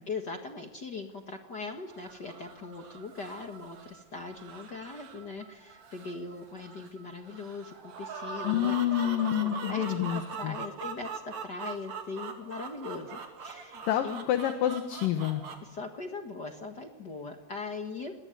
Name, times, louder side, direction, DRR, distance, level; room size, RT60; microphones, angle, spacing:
voice 1, 0.0-11.1 11.4-14.3 15.6-18.1, left 4 dB, 50° left, 5 dB, 1.2 m, -40 dB
sound 1, 1.9-15.6, right 5 dB, 50° right, 3.5 m, -42 dB
voice 2, 8.4-10.6 13.9-15.4, left 11 dB, 65° left, 7 dB, 2.8 m, -28 dB
27.5 x 21.0 x 9.3 m, 1.2 s
omnidirectional pair, 4.6 m